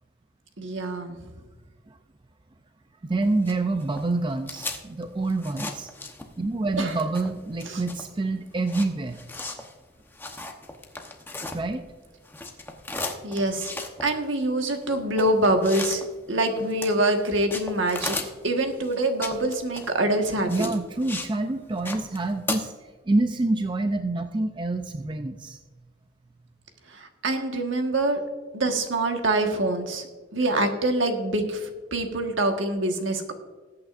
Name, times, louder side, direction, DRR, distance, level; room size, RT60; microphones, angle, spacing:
voice 1, 0.6-1.2 6.8-6.9 7.7-7.8 13.2-13.7 14.0-20.7 26.9-28.2 28.5-30.1 30.3-33.3, right 1 dB, 70° right, 4 dB, 1.5 m, -25 dB
voice 2, 3.0-5.9 6.4-9.2 11.5-11.8 20.5-25.6, right 2 dB, 25° right, 7 dB, 0.4 m, -27 dB
sound 1, 3.2-6.5 6.8-12.0 12.2-21.3 21.6-22.6, left 2 dB, 10° left, 0.9 m, -36 dB
20.5 x 8.6 x 2.5 m, 1.4 s
head